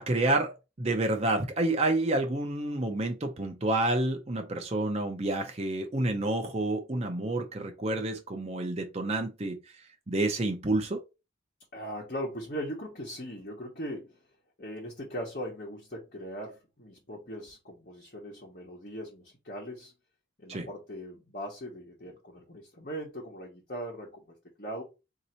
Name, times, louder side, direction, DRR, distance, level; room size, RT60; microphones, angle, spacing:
voice 1, 0.0-9.6 10.1-11.0 20.5-20.7, right 2 dB, 35° right, 0.6 m, -29 dB
voice 2, 11.7-14.2 14.6-19.9 20.4-24.2 24.6-24.8, equal, 50° left, 1.1 m, -39 dB
3.8 x 2.8 x 4.3 m
head